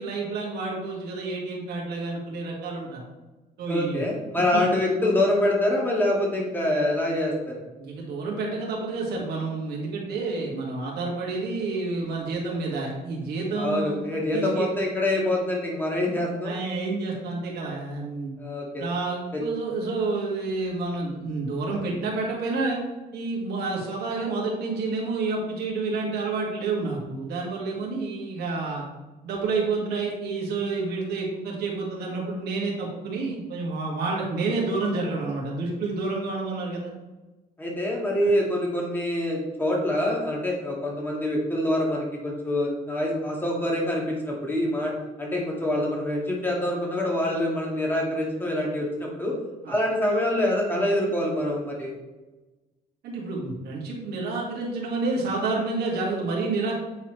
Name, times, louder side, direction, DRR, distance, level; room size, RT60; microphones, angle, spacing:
voice 1, 0.0-3.0 3.6-4.0 4.5-4.6 7.8-14.0 14.3-14.7 16.4-18.3 18.8-22.8 23.1-28.8 29.2-36.9 49.6-49.7 53.0-56.7, right 3 dB, 70° right, -3 dB, 2.0 m, -29 dB
voice 2, 3.7-7.5 13.6-16.5 18.4-18.9 19.3-19.4 37.6-44.9 45.2-49.3 49.7-51.9, left 1 dB, 10° left, -2 dB, 2.0 m, -25 dB
8.3 x 4.1 x 3.2 m, 1.1 s
cardioid pair, 110°, 17 cm